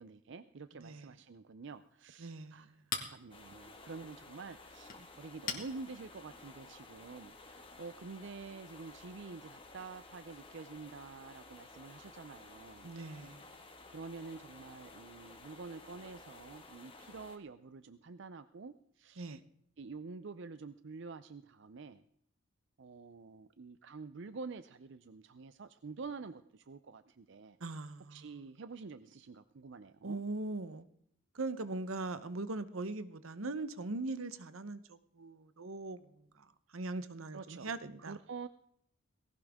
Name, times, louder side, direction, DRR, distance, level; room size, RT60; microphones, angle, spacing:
voice 1, 0.0-2.7 3.1-12.9 13.9-19.3 19.8-22.0 22.8-27.6 28.1-30.2 37.3-38.5, right 4 dB, 60° right, 12 dB, 0.5 m, -48 dB
voice 2, 0.7-1.1 2.2-2.8 12.8-13.4 19.2-19.4 27.6-28.3 30.0-30.8 31.3-36.5 36.7-38.1, right 2 dB, 80° right, 13 dB, 0.9 m, -41 dB
Chink clink, 1.6-7.2, left 6 dB, 45° left, 2.0 m, -47 dB
sound 1, 3.3-17.4, left 3 dB, 25° left, 1.8 m, -55 dB
18.5 x 17.0 x 3.6 m, 0.69 s
head